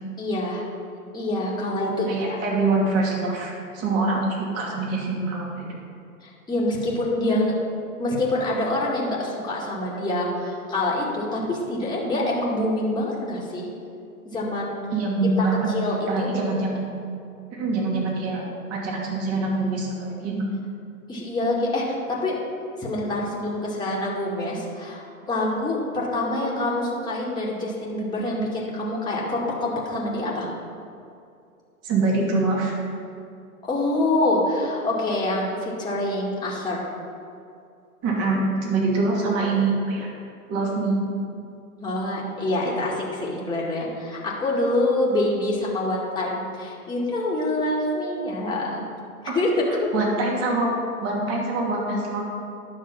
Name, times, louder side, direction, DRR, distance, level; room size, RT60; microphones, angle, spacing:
voice 1, 0.2-0.6 1.1-2.4 6.2-7.5 8.0-13.7 14.3-14.8 15.4-16.3 21.1-22.4 22.8-30.5 33.6-36.9 41.8-48.8 49.3-49.6, left 1 dB, 10° left, -5 dB, 2.0 m, -26 dB
voice 2, 2.1-5.8 14.9-15.7 16.1-16.8 17.5-18.4 18.7-20.4 31.8-32.8 38.0-40.1 40.5-41.0 49.3-49.4 49.9-50.7 51.0-52.2, right 3 dB, 35° right, -2 dB, 2.6 m, -24 dB
10.5 x 6.1 x 5.8 m, 2.5 s
hypercardioid pair, 105°, 43 cm